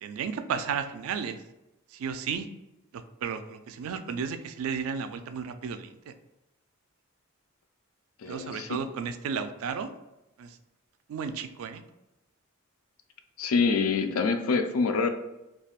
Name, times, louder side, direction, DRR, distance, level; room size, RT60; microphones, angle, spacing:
voice 1, 0.0-1.4 1.9-2.5 2.9-6.1 8.2-9.9 10.4-10.6 11.1-11.8, right 6 dB, 70° right, 9 dB, 0.3 m, -33 dB
voice 2, 8.2-8.8 13.4-15.1, left 4 dB, 75° left, 7 dB, 0.4 m, -26 dB
3.4 x 2.3 x 2.3 m, 0.97 s
head